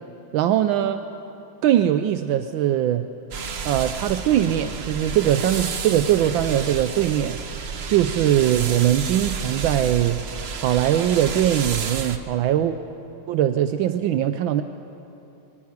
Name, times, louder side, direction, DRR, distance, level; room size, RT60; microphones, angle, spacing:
voice 1, 0.3-1.0 1.6-3.1 3.6-7.4 7.9-10.2 10.6-12.7 13.3-14.6, right 11 dB, 75° right, 10 dB, 1.3 m, -21 dB
sound 1, 3.3-12.2, right 5 dB, 50° right, 0.8 m, -31 dB
23.0 x 11.5 x 9.6 m, 2.8 s
omnidirectional pair, 2.2 m